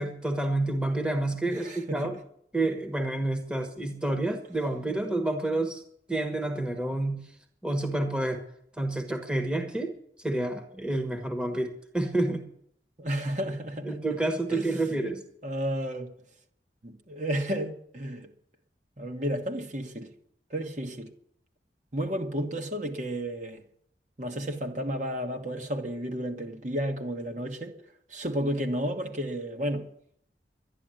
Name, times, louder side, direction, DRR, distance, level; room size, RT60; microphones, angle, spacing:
voice 1, 0.0-2.2 2.5-5.8 6.1-7.2 7.6-8.4 8.8-9.9 10.2-12.5 13.8-15.2, right 2 dB, 5° right, 1.3 m, -29 dB
voice 2, 1.5-2.0 13.0-13.9 14.5-15.1 15.4-16.1 16.8-18.3 19.0-20.1 20.5-21.1 21.9-23.6 24.2-27.7 28.1-29.9, equal, 45° right, 1.4 m, -32 dB
12.0 x 11.0 x 9.1 m
head